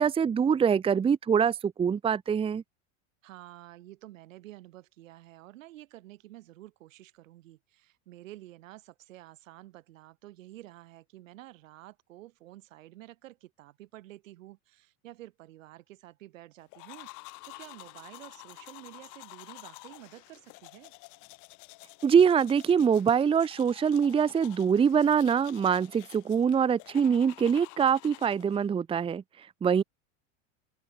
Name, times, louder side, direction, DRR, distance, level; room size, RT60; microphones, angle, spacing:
voice 1, 0.0-2.6 22.0-29.8, right 7 dB, 15° right, 0.9 m, -24 dB
voice 2, 3.2-17.1 17.5-20.9, right 16 dB, 85° right, 7.1 m, -50 dB
sound 1, 16.7-28.7, left 27 dB, 50° left, 2.8 m, -50 dB
open air
supercardioid pair, 145°, 38 cm